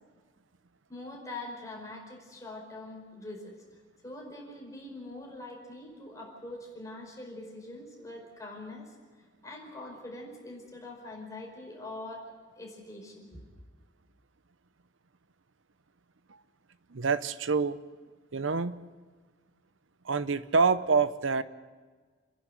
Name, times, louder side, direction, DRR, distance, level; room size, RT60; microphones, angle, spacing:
voice 1, 0.9-8.9 9.4-13.4, left 2 dB, 15° left, -1 dB, 5.0 m, -44 dB
voice 2, 16.9-17.8 18.3-18.8 20.0-21.4, right 4 dB, 90° right, 14 dB, 0.8 m, -26 dB
28.5 x 11.0 x 9.4 m, 1.5 s
head